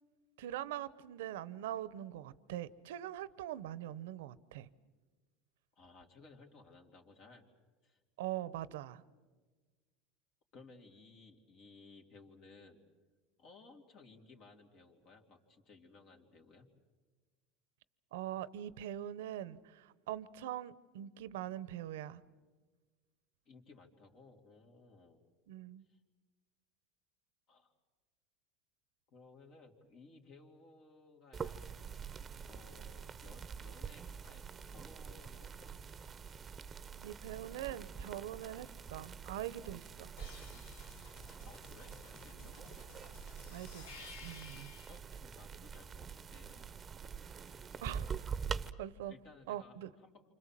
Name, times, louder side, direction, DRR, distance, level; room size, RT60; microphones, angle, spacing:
voice 1, 0.4-4.7 8.2-9.0 18.1-22.2 25.5-25.8 37.0-40.1 43.5-44.7 47.8-48.1 48.8-49.1 49.5-49.9, right 12 dB, 90° right, 0.8 m, -43 dB
voice 2, 5.7-7.5 7.8-8.0 10.5-12.8 13.4-16.7 23.4-25.2 25.9-26.0 27.5-27.7 29.1-31.6 32.5-35.8 41.4-42.8 44.9-46.7 47.4-47.8 49.1-50.2, left 3 dB, 50° left, 3.4 m, -59 dB
sound 1, 31.3-48.7, right 6 dB, 25° right, 0.9 m, -45 dB
sound 2, 40.2-45.0 47.8-48.9, left 5 dB, 90° left, 2.7 m, -55 dB
28.5 x 25.5 x 7.6 m
supercardioid pair, 120°, 0 cm